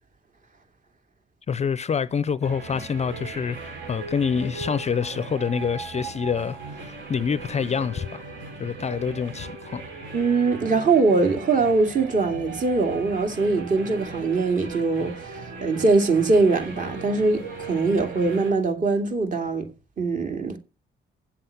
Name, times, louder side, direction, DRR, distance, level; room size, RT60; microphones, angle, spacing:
voice 1, 1.5-8.2 8.6-9.8, left 6 dB, 35° left, 0.5 m, -27 dB
sound 1, 2.4-18.5, right 4 dB, 70° right, 5.0 m, -38 dB
voice 2, 10.1-19.7 20.0-20.6, right 3 dB, 40° right, 2.5 m, -22 dB
8.6 x 7.7 x 5.7 m
cardioid pair, 90°, 20 cm